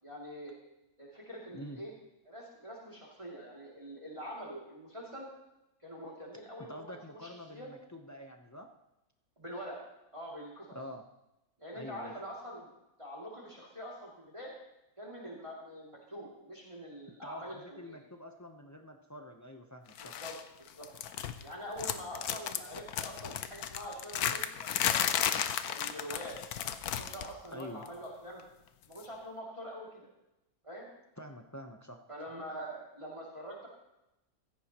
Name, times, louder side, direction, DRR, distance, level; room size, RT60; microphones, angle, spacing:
voice 1, 0.0-0.5 1.0-1.9 2.2-5.3 5.8-7.7 9.4-9.8 10.1-10.8 11.6-12.7 13.0-14.5 15.0-18.0 20.0-20.9 21.4-25.1 25.7-28.4 28.9-30.1 30.6-30.9 32.1-33.7, equal, 20° right, -4 dB, 2.7 m, -45 dB
voice 2, 6.7-8.7 10.7-11.0 11.7-12.1 17.2-20.2 27.5-27.9 31.2-32.0, left 1 dB, 20° left, 3 dB, 0.4 m, -46 dB
sound 1, 20.0-20.4 20.7-21.5 21.8-27.3 27.6-27.9 29.0-29.1, left 9 dB, 75° left, 1.2 m, -34 dB
16.0 x 14.0 x 3.0 m, 0.91 s
omnidirectional pair, 1.7 m